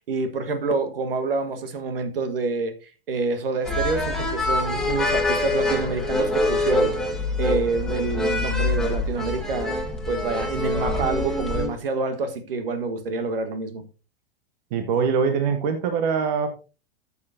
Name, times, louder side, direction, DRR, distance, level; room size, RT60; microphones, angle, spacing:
voice 1, 0.0-2.7 3.1-6.9 7.4-9.8 10.1-13.8, right 3 dB, 60° right, 1.4 m, -27 dB
sound 1, 3.6-11.7, left 2 dB, ahead, 1.7 m, -25 dB
voice 2, 14.7-16.5, right 6 dB, 40° right, 1.0 m, -23 dB
13.0 x 7.0 x 2.6 m
figure-of-eight pair, 95°, 31 cm